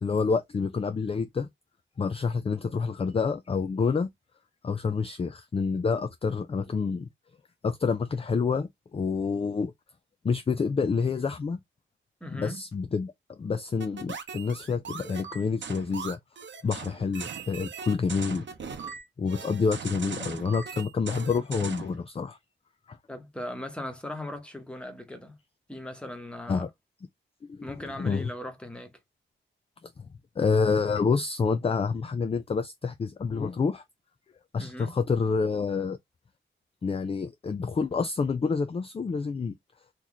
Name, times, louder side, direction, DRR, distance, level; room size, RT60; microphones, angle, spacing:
voice 1, 0.0-1.5 2.0-4.1 4.6-7.1 7.6-9.7 10.2-11.6 12.3-13.1 13.4-16.2 16.6-18.4 19.2-22.4 22.9-23.0 26.5-26.7 27.5-27.7 28.0-28.3 30.4-33.8 34.5-36.0 36.8-39.5, left 5 dB, 30° left, 0.4 m, -28 dB
voice 2, 12.2-12.6 23.1-25.4 25.7-26.7 27.6-28.9 34.6-34.9, left 1 dB, 5° left, 1.0 m, -38 dB
sound 1, 13.8-22.0, right 6 dB, 65° right, 0.7 m, -39 dB
3.1 x 2.5 x 3.8 m
wide cardioid pair, 115°, 20 cm